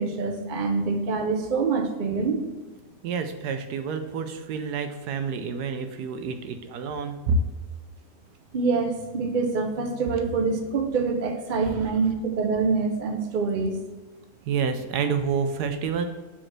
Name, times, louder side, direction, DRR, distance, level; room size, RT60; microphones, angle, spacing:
voice 1, 0.0-2.5 8.5-13.8, right 4 dB, 45° right, 3 dB, 0.6 m, -25 dB
voice 2, 3.0-7.4 11.7-11.8 14.5-16.1, right 6 dB, 75° right, 7 dB, 1.1 m, -28 dB
5.0 x 4.3 x 5.8 m, 1.3 s
omnidirectional pair, 1.8 m